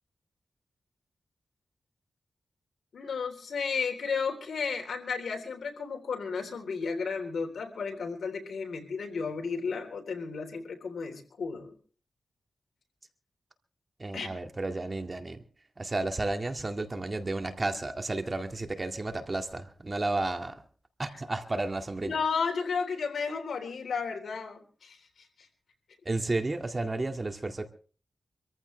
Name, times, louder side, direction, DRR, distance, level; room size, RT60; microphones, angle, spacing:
voice 1, 2.9-11.7 14.1-14.3 22.0-25.0, left 5 dB, 85° left, 4 dB, 3.6 m, -33 dB
voice 2, 14.0-15.4 15.8-20.6 21.0-22.2 26.1-27.7, right 2 dB, 35° right, 6 dB, 2.1 m, -32 dB
25.5 x 14.5 x 3.3 m, 0.40 s
cardioid pair, 60°, 0 cm